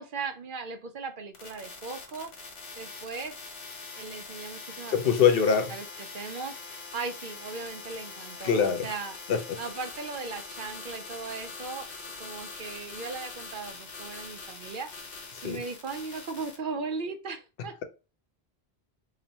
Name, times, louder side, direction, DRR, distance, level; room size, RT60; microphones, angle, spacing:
voice 1, 0.0-2.3 2.8-3.3 4.0-6.6 6.9-9.2 9.6-11.9 12.2-14.9 15.4-17.7, right 4 dB, 60° right, 0.7 m, -38 dB
sound 1, 1.3-16.6, left 4 dB, 85° left, 1.3 m, -43 dB
voice 2, 4.9-5.7 8.4-8.9 9.3-9.6 15.4-15.6, left 7 dB, 70° left, 0.8 m, -23 dB
4.1 x 3.0 x 2.8 m
omnidirectional pair, 1.0 m